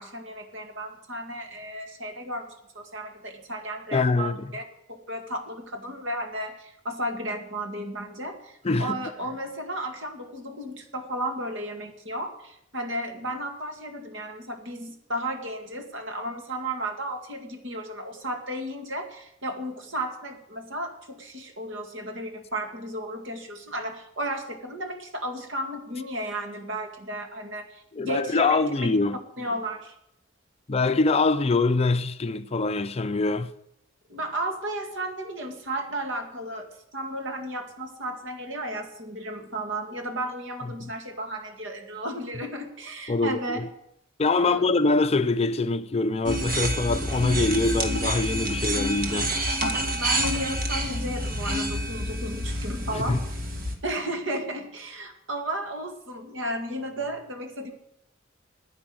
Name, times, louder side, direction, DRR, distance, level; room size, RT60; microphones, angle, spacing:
voice 1, 0.0-2.5 2.8-4.6 4.9-28.9 29.4-29.9 34.1-36.7 36.9-43.6 44.4-44.7 49.9-53.2 53.8-57.7, right 1 dB, 65° right, 2.1 m, -34 dB
voice 2, 3.9-4.5 8.6-9.0 27.9-29.2 30.7-33.5 43.1-43.7 44.2-49.3 52.9-53.2, left 3 dB, 30° left, 0.5 m, -24 dB
sound 1, 46.2-53.7, right 1 dB, 45° right, 1.7 m, -28 dB
10.5 x 9.6 x 7.9 m
head